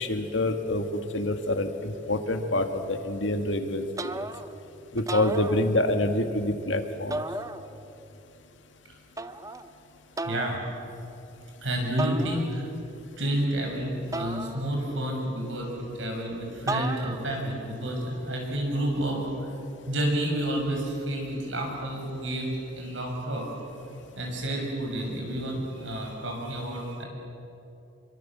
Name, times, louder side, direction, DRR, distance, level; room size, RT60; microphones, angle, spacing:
voice 1, 0.0-3.9 4.1-4.2 4.9-7.2, left 1 dB, 80° left, 6 dB, 2.0 m, -27 dB
sound 1, 4.0-4.6 5.0-6.1 7.1-8.0 9.2-9.7 10.2-10.7 12.0-12.8 14.1-15.1 16.7-17.4, right 2 dB, 20° right, 0.7 m, -35 dB
voice 2, 10.2-10.6 11.6-12.7 13.2-19.5 19.9-23.5 24.1-27.1, right 1 dB, 85° right, 0 dB, 6.8 m, -30 dB
27.0 x 24.0 x 7.5 m, 2.9 s
head